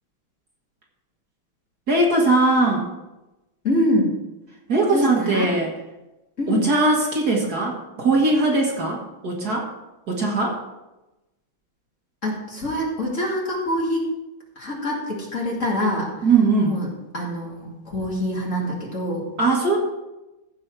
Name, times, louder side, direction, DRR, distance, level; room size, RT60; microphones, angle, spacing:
voice 1, 1.9-2.9 4.7-5.7 6.5-9.7 10.1-10.6 16.2-16.7 19.4-19.8, right 3 dB, 45° right, -1 dB, 2.1 m, -20 dB
voice 2, 3.6-4.1 4.9-5.5 6.4-6.7 12.2-14.1 14.6-16.3 16.6-16.9 17.1-19.3, left 1 dB, 35° left, -3 dB, 2.5 m, -25 dB
15.5 x 5.6 x 4.6 m, 1.0 s
omnidirectional pair, 2.4 m